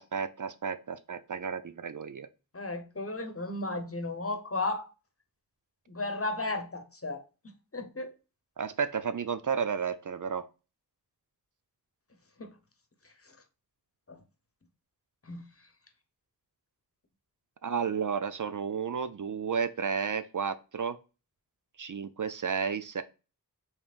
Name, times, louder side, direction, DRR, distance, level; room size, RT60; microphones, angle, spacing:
voice 1, 0.0-2.3 8.6-10.5 17.6-21.0 21.8-23.0, right 6 dB, 55° right, 0.5 m, -32 dB
voice 2, 2.5-4.9 5.9-7.2 7.7-8.1 12.4-12.5 14.1-14.2 15.3-15.4, left 2 dB, 40° left, 0.9 m, -34 dB
5.2 x 3.2 x 2.4 m
wide cardioid pair, 45°, 36 cm